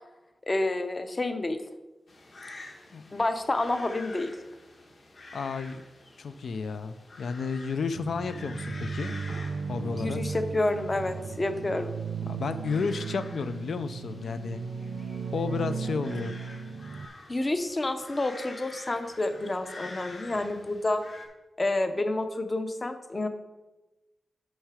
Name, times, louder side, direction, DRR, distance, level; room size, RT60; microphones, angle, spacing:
voice 1, 0.5-1.6 3.1-4.3 9.9-11.9 17.3-21.0 21.6-23.3, left 2 dB, 25° left, 8 dB, 0.6 m, -29 dB
sound 1, 2.1-21.3, left 2 dB, 50° left, 1.3 m, -48 dB
voice 2, 5.3-5.8 6.2-9.2 9.7-10.2 12.3-14.6 15.3-16.3, left 5 dB, 75° left, 10 dB, 0.4 m, -32 dB
sound 2, 8.0-17.1, right 5 dB, 85° right, 0.3 m, -36 dB
6.6 x 6.2 x 4.8 m, 1.1 s
wide cardioid pair, 175°, 0 cm